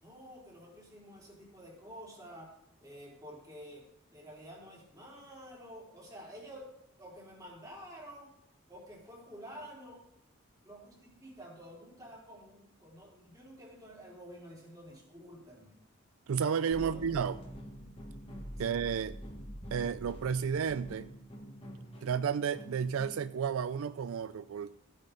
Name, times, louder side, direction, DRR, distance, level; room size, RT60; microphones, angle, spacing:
voice 1, 0.0-2.5 2.8-3.8 4.1-6.7 7.0-8.3 8.7-10.0 10.6-15.7 16.8-17.0 18.6-18.7, equal, 15° right, -4 dB, 3.6 m, -50 dB
voice 2, 16.3-17.4 18.6-19.2 19.7-21.1 22.0-24.7, right 7 dB, 75° right, 14 dB, 0.4 m, -32 dB
sound 1, 16.7-23.4, equal, 25° left, 1.8 m, -46 dB
15.0 x 8.6 x 3.9 m, 0.80 s
head